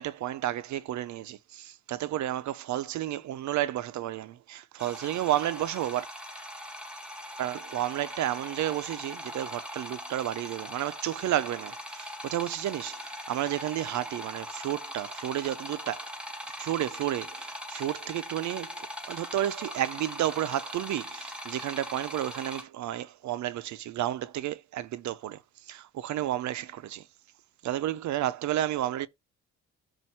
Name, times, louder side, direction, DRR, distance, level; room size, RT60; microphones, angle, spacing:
voice 1, 0.0-6.1 7.4-16.0 16.6-25.4 25.7-27.0 27.6-29.1, right 13 dB, 70° right, 0.6 m, -31 dB
sound 1, 4.8-22.6, equal, 5° right, 1.9 m, -41 dB
7.7 x 2.6 x 5.6 m
cardioid pair, 90°, 30 cm